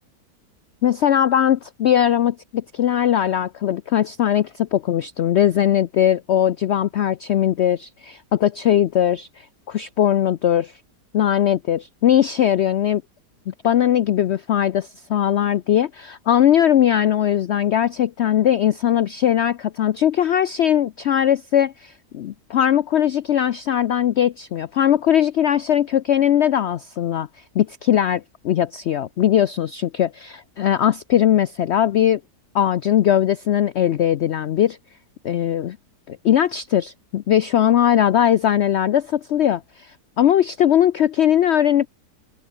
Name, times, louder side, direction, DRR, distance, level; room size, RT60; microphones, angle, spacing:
voice 1, 0.8-10.7 11.1-13.0 13.5-27.3 27.5-32.2 32.5-34.8 35.2-35.8 36.1-41.9, left 10 dB, 75° left, 0.6 m, -19 dB
open air
omnidirectional pair, 1.7 m